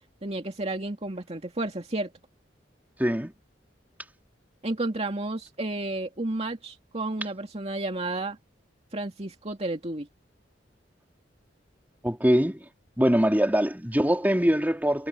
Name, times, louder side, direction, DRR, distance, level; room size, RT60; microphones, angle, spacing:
voice 1, 0.2-2.1 4.6-8.4 8.9-10.1, right 2 dB, 35° right, 2.4 m, -31 dB
voice 2, 3.0-3.3 12.0-12.6 13.0-15.1, equal, 10° right, 3.6 m, -23 dB
head